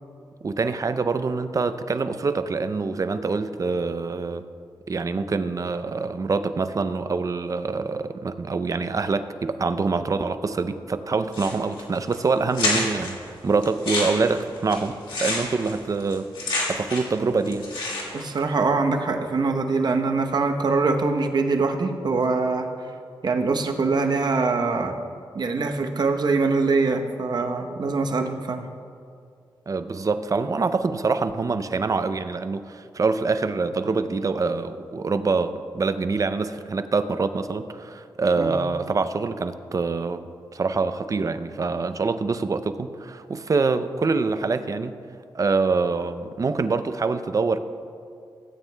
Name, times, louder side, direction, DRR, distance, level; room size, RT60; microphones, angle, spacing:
voice 1, 0.4-4.4 4.9-16.3 16.7-17.7 29.7-40.2 40.5-45.0 45.3-47.6, right 4 dB, 45° right, 11 dB, 0.5 m, -25 dB
sound 1, 11.3-11.8 12.1-12.2 12.5-13.1 13.6-17.2 17.4-18.3, left 2 dB, 80° left, 2.0 m, -28 dB
voice 2, 18.1-22.7 23.2-24.9 25.3-28.7 38.4-38.6, right 4 dB, 60° right, 4 dB, 0.9 m, -23 dB
16.5 x 9.0 x 2.3 m, 2.3 s
cardioid pair, 65°, 8 cm